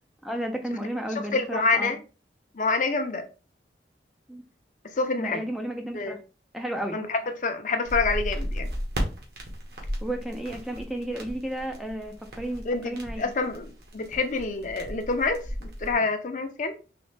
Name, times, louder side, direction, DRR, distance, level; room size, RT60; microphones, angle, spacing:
voice 1, 0.2-2.0 4.3-4.4 5.2-6.2 6.5-7.0 10.0-13.3, right 1 dB, ahead, 0.4 m, -33 dB
voice 2, 1.1-2.0 2.5-3.3 4.9-5.4 5.9-6.2 6.9-8.7 12.6-16.7, left 3 dB, 45° left, 0.6 m, -27 dB
sound 1, 7.9-15.9, equal, 60° right, 1.2 m, -35 dB
4.1 x 3.2 x 3.2 m
head